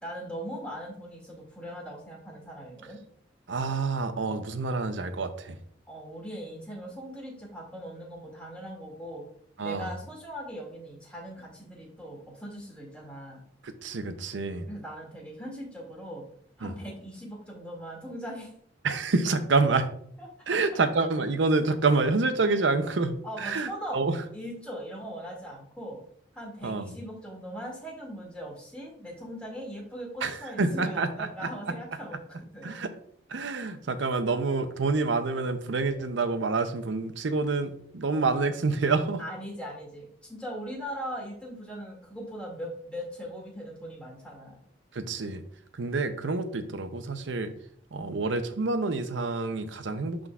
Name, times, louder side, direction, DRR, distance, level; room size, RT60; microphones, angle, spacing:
voice 1, 0.0-3.0 5.9-9.2 9.6-13.4 14.7-16.2 16.6-18.5 20.2-20.8 23.2-24.0 24.3-26.0 26.4-32.2 32.5-32.7 39.2-44.5, equal, 5° left, -3 dB, 2.3 m, -40 dB
voice 2, 3.5-5.6 9.6-9.9 13.6-14.7 16.6-16.8 18.8-19.9 20.5-24.2 26.6-26.8 30.2-31.5 32.6-32.9 33.3-39.2 44.9-45.4 45.7-47.5 47.9-50.3, right 3 dB, 80° right, 10 dB, 0.6 m, -27 dB
11.5 x 3.8 x 2.4 m, 0.64 s
head